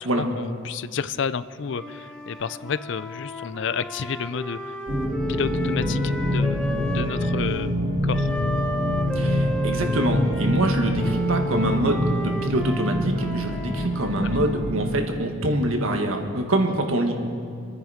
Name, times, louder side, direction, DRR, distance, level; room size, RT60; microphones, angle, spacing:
voice 1, 0.0-4.7 5.3-8.3 14.2-14.4, left 6 dB, 60° left, 15 dB, 0.4 m, -31 dB
Wind instrument woodwind instrument, 1.6-7.4 8.1-14.6, equal, 5° left, 1.0 m, -34 dB
sound 1, 4.9-15.0, equal, 30° right, 2.3 m, -26 dB
voice 2, 9.1-17.1, right 1 dB, 85° right, 3 dB, 1.7 m, -25 dB
26.0 x 9.8 x 5.0 m, 2.3 s
head